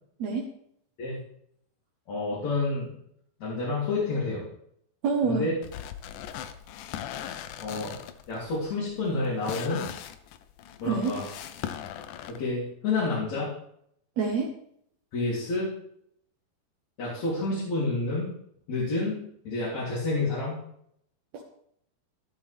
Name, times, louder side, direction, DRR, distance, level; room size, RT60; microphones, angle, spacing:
voice 1, 2.1-2.9 3.4-4.4 5.2-5.6 7.6-7.9 8.3-9.8 10.8-11.2 12.3-13.5 15.1-15.7 17.0-18.3 18.7-20.6, left 3 dB, 45° left, -8 dB, 4.2 m, -29 dB
voice 2, 5.0-5.5 10.8-11.1 14.2-14.5, right 5 dB, 70° right, 0 dB, 1.7 m, -26 dB
sound 1, 5.6-12.4, left 10 dB, 80° left, 1.8 m, -39 dB
13.5 x 13.0 x 3.5 m, 0.71 s
omnidirectional pair, 4.5 m